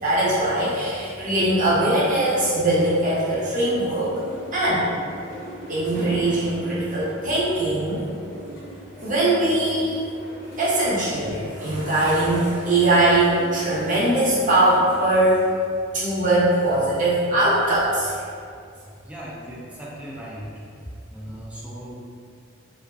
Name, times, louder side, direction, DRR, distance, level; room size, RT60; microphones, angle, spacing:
voice 1, 0.0-4.1 4.5-4.9 5.7-8.0 9.0-10.0 10.6-15.4 15.9-18.2, right 1 dB, 40° right, -9 dB, 0.7 m, -21 dB
sound 1, 1.9-15.3, equal, 65° left, 0.6 m, -40 dB
voice 2, 19.0-20.5 21.1-21.9, equal, 5° right, -6 dB, 0.3 m, -37 dB
2.4 x 2.3 x 2.3 m, 2.3 s
head